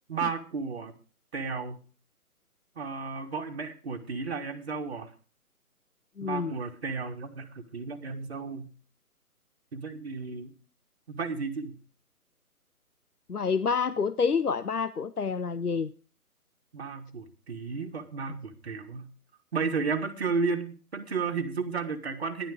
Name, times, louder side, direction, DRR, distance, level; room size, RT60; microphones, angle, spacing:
voice 1, 0.1-0.9 1.3-1.8 2.8-5.1 6.2-8.7 9.7-10.5 11.1-11.8 16.7-19.1 19.5-22.5, right 4 dB, 45° right, 1.9 m, -33 dB
voice 2, 6.2-6.5 13.3-15.9, left 5 dB, 85° left, 0.8 m, -28 dB
13.5 x 11.0 x 4.9 m
figure-of-eight pair, 145°, 45 cm